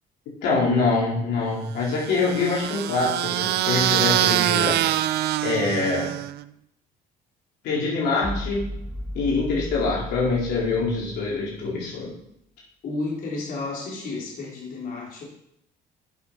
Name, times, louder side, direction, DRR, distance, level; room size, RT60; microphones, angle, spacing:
voice 1, 0.4-4.8 5.4-6.1 7.6-8.7 9.1-12.1, left 3 dB, 80° left, -5 dB, 4.0 m, -24 dB
sound 1, 1.9-6.4, right 14 dB, 75° right, 0.5 m, -24 dB
sound 2, 8.2-11.7, equal, 15° left, 1.2 m, -35 dB
voice 2, 12.8-15.2, left 3 dB, 55° left, -4 dB, 3.9 m, -32 dB
10.5 x 6.4 x 5.8 m, 0.74 s
cardioid pair, 110°, 17 cm